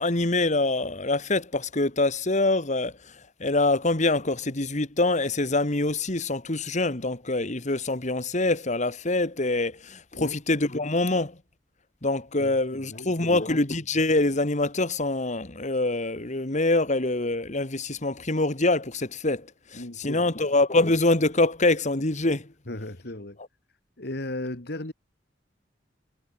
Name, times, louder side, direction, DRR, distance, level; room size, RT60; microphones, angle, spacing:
voice 1, 0.0-2.9 3.4-11.4 12.0-19.5 19.7-22.5, left 2 dB, 40° left, 2.1 m, -25 dB
voice 2, 12.4-13.5 19.7-20.3 22.7-23.4 24.0-24.9, left 1 dB, 60° left, 2.5 m, -36 dB
head